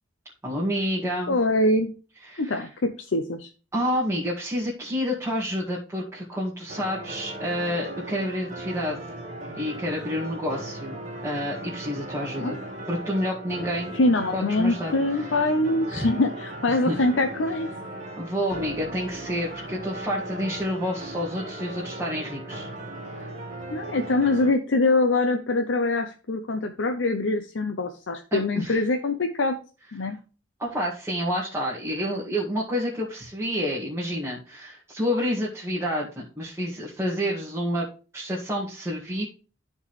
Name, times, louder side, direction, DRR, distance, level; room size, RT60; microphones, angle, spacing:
voice 1, 0.4-1.3 2.2-2.7 3.7-9.0 9.6-11.0 11.2-12.6 12.9-13.9 14.3-15.4 15.9-16.1 16.7-17.0 18.2-22.7 23.1-23.3 28.3-28.9 30.0-30.1 30.6-37.9 38.1-39.2, equal, 15° right, -6 dB, 1.9 m, -29 dB
voice 2, 1.3-1.9 2.4-3.5 12.4-12.6 13.9-17.7 23.7-29.5 29.9-30.2, left 2 dB, 90° left, 5 dB, 0.7 m, -24 dB
sound 1, 6.7-24.5, right 1 dB, 40° right, 2.0 m, -37 dB
13.0 x 4.5 x 3.2 m, 0.35 s
head